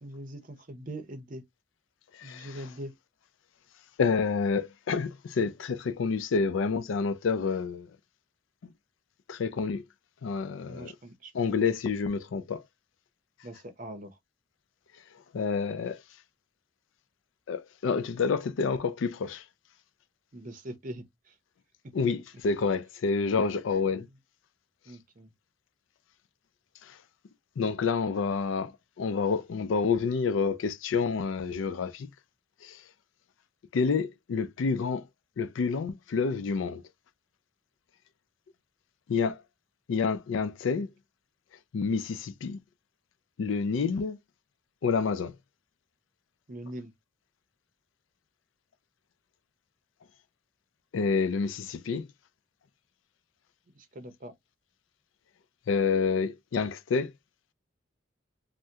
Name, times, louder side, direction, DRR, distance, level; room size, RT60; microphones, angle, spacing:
voice 1, 0.0-1.4 2.2-2.9 10.6-11.6 13.4-14.2 20.3-21.4 23.9-24.2 24.9-25.3 46.5-46.9 53.7-54.3, right 1 dB, 45° right, 0.6 m, -42 dB
voice 2, 2.1-2.5 4.0-7.9 9.3-9.8 10.2-10.9 11.3-12.6 15.3-16.0 17.5-19.4 21.9-24.1 26.8-27.0 27.6-28.7 29.0-32.1 32.6-32.8 33.7-35.1 35.4-36.8 39.1-39.4 39.9-40.9 41.7-42.6 43.4-44.2 44.8-45.4 50.9-52.1 55.7-57.1, left 5 dB, 80° left, 0.4 m, -28 dB
2.7 x 2.1 x 3.4 m
head